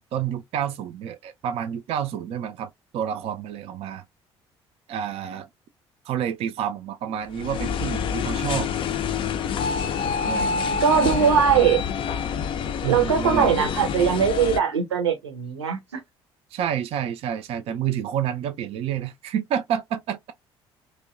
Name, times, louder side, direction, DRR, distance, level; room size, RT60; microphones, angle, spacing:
voice 1, 0.0-4.0 4.9-5.5 6.1-8.7 10.2-11.7 12.8-13.6 16.5-20.3, right 9 dB, 45° right, 0.4 m, -29 dB
sound 1, 7.3-14.6, left 6 dB, 35° left, 0.4 m, -27 dB
voice 2, 10.8-11.8 12.8-16.0, right 7 dB, 80° right, 0.7 m, -21 dB
2.6 x 2.1 x 2.4 m
figure-of-eight pair, 50°, 14 cm